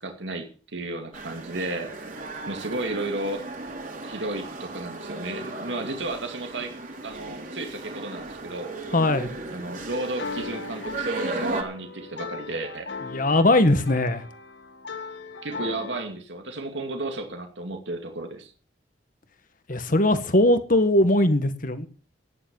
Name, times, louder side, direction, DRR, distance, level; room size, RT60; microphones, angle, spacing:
voice 1, 0.0-2.1 2.5-3.5 4.0-6.7 7.0-8.7 9.5-12.9 15.4-18.5, right 2 dB, 85° right, 2.6 m, -33 dB
sound 1, 1.1-11.6, right 3 dB, 50° right, 3.9 m, -36 dB
voice 2, 8.9-9.3 13.1-14.2 19.7-21.9, left 1 dB, 50° left, 1.8 m, -20 dB
sound 2, 9.9-16.0, left 4 dB, 70° left, 2.1 m, -37 dB
14.0 x 10.5 x 7.2 m
head